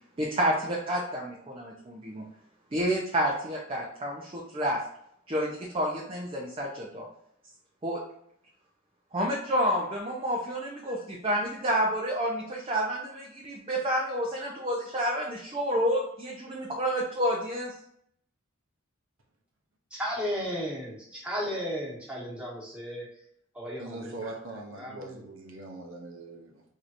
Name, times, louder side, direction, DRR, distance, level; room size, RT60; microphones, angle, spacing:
voice 1, 0.2-2.2 2.7-4.8 5.3-5.5 5.7-7.1 7.8-8.0 9.1-17.7, equal, 25° right, -3 dB, 0.5 m, -29 dB
voice 2, 19.9-23.1 23.5-24.2 24.7-25.2, equal, 5° right, -6 dB, 1.1 m, -34 dB
voice 3, 23.8-26.6, right 2 dB, 65° right, 1 dB, 0.7 m, -41 dB
4.7 x 2.7 x 2.5 m, 0.69 s
head